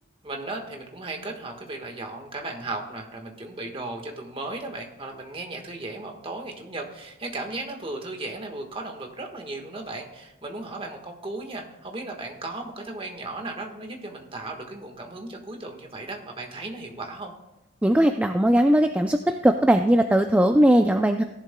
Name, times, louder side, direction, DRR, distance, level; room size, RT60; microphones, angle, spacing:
voice 1, 0.2-17.3, right 2 dB, 25° right, 2 dB, 1.4 m, -36 dB
voice 2, 17.8-21.2, right 1 dB, 5° right, 6 dB, 0.3 m, -19 dB
16.0 x 11.0 x 2.2 m, 0.98 s
head